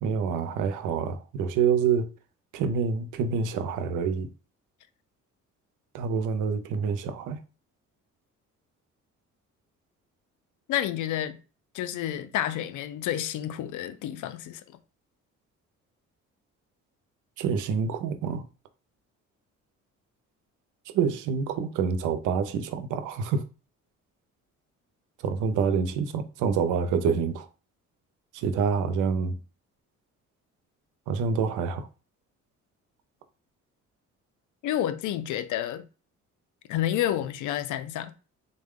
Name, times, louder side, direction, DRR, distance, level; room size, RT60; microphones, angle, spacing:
voice 1, 0.0-2.1 2.5-4.3 5.9-7.4 17.4-18.4 20.9-23.4 25.2-27.5 28.3-29.3 31.1-31.9, right 6 dB, 85° right, 0.6 m, -27 dB
voice 2, 10.7-11.4 11.7-14.6 34.6-35.9 36.7-38.1, left 11 dB, 80° left, 0.5 m, -29 dB
3.8 x 2.2 x 3.6 m
cardioid pair, 90°, 30 cm